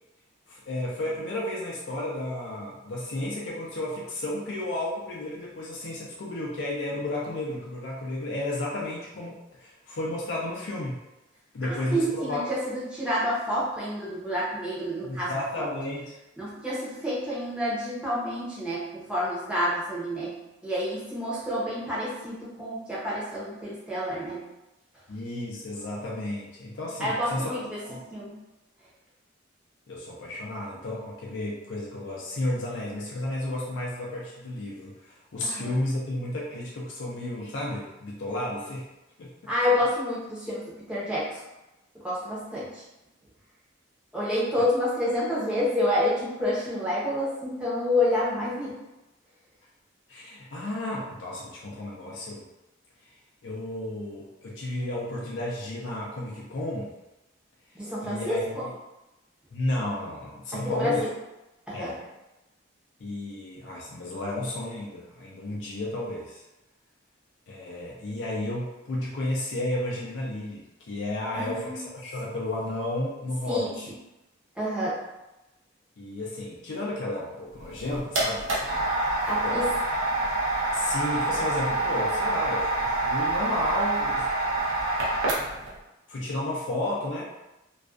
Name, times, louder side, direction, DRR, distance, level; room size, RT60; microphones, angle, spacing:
voice 1, 0.5-11.0 11.5-12.4 15.0-16.1 25.1-27.5 27.8-28.0 29.9-38.9 39.2-39.5 50.1-52.4 53.4-56.9 58.0-58.7 59.5-61.0 61.7-62.0 63.0-66.4 67.5-73.9 76.0-78.9 79.4-79.7 80.7-84.3 84.6-84.7 86.1-87.2, left 1 dB, 70° left, -4 dB, 0.4 m, -32 dB
voice 2, 11.6-15.3 15.6-15.7 16.4-24.5 27.0-27.8 28.1-28.3 35.4-35.8 39.5-41.4 42.0-42.8 44.1-48.8 57.7-58.3 60.6-61.1 61.7-61.9 71.3-71.8 73.5-73.7 74.6-75.0 79.3-79.7, left 1 dB, 5° right, -8 dB, 0.6 m, -28 dB
sound 1, 77.6-85.7, right 2 dB, 85° right, 0.7 m, -27 dB
2.4 x 2.2 x 2.4 m, 1.0 s
head